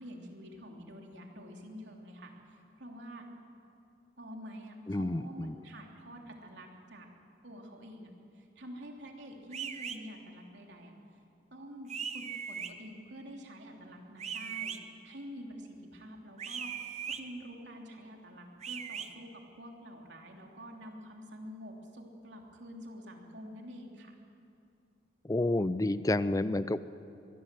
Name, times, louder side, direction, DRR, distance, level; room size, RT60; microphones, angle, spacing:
voice 1, 0.0-3.3 4.2-7.1 7.4-8.1 8.3-10.9 11.5-24.1, equal, 80° right, 1 dB, 3.2 m, -47 dB
voice 2, 4.9-5.5 25.2-26.8, left 2 dB, 20° left, 14 dB, 0.4 m, -29 dB
sound 1, 9.5-10.0 11.9-12.7 14.2-14.8 16.4-17.2 18.6-19.1, right 7 dB, 40° right, 1.1 m, -38 dB
23.5 x 21.0 x 7.7 m, 2.6 s
head